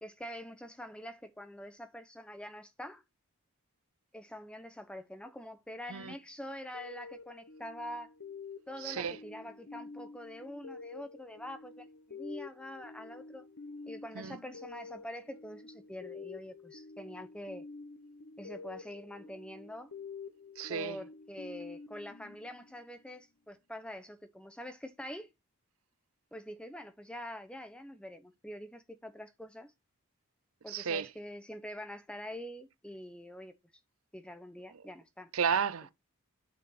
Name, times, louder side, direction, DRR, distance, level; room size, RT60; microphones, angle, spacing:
voice 1, 0.0-3.0 4.1-8.1 8.7-13.5 13.8-17.6 18.4-19.9 20.7-25.3 26.3-29.7 30.6-33.5 34.1-35.3, equal, 5° left, 0.9 m, -45 dB
sound 1, 6.7-23.1, left 4 dB, 65° left, 0.9 m, -49 dB
voice 2, 8.8-9.2 14.2-14.4 20.6-21.0 30.7-31.1 35.3-35.9, right 7 dB, 75° right, 0.6 m, -32 dB
9.3 x 5.0 x 5.7 m
head